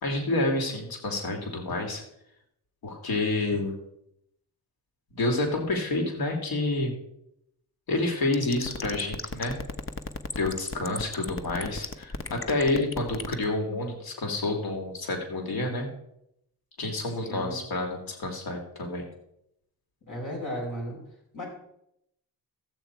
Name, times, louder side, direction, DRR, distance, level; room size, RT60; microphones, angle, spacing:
voice 1, 0.0-2.0 2.8-3.7 5.1-6.9 7.9-9.6 10.4-15.9 16.8-19.1, left 2 dB, 85° left, 3 dB, 2.8 m, -29 dB
sound 1, 8.3-13.4, left 4 dB, 35° left, 1.0 m, -34 dB
voice 2, 17.1-17.6 20.1-21.0 21.3-21.4, equal, 60° left, -1 dB, 5.6 m, -35 dB
14.0 x 8.7 x 4.6 m, 0.76 s
cardioid pair, 95°, 35 cm